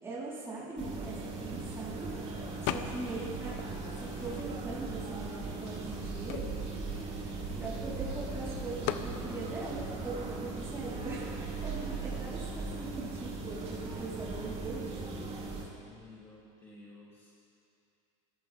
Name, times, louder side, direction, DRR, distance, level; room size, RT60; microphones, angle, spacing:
voice 1, 0.0-2.1 2.7-3.6 4.0-6.6 6.9-7.0 7.6-11.2 11.6-15.0 15.3-15.7, right 3 dB, 15° right, -8 dB, 4.2 m, -41 dB
sound 1, 0.8-15.6, right 3 dB, 35° right, 3.3 m, -38 dB
voice 2, 2.4-2.9 7.3-7.8 15.7-17.4, left 2 dB, 15° left, -6 dB, 3.0 m, -54 dB
sound 2, 2.7-3.2 3.6-4.8 5.5-5.6 5.8-8.0 8.8-9.1, left 12 dB, 65° left, 0.9 m, -39 dB
26.5 x 14.5 x 3.6 m, 2.6 s
supercardioid pair, 105°, 18 cm